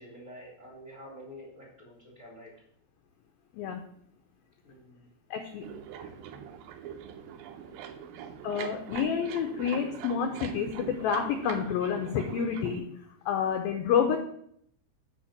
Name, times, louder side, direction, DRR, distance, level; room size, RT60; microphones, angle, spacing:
voice 1, 0.0-2.5 4.6-5.1 6.0-6.4 7.6-8.3 8.5-8.6, equal, 25° right, -3 dB, 2.1 m, -49 dB
voice 2, 5.3-5.7 8.4-12.9 13.3-14.2, left 7 dB, 80° left, 4 dB, 2.2 m, -29 dB
sound 1, 5.6-12.8, right 8 dB, 85° right, 2.1 m, -42 dB
7.6 x 5.2 x 7.1 m, 0.67 s
omnidirectional pair, 5.0 m